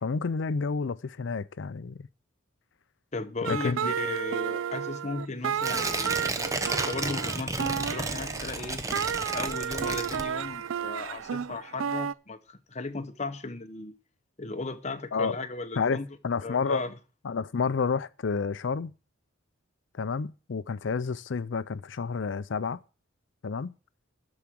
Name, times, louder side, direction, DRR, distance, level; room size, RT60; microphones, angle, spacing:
voice 1, 0.0-2.0 3.5-3.9 15.1-15.4 15.8-16.8 17.2-18.9 19.9-22.8 23.4-23.7, left 5 dB, 60° left, 0.4 m, -30 dB
voice 2, 3.1-6.2 6.9-8.8 9.3-13.9 14.4-16.1 16.4-17.0, left 3 dB, 35° left, 0.9 m, -36 dB
sound 1, 3.4-12.1, right 8 dB, 75° right, 0.4 m, -32 dB
Tearing, 5.6-10.7 11.1-11.2, right 3 dB, 15° right, 0.9 m, -32 dB
13.0 x 4.9 x 7.3 m
head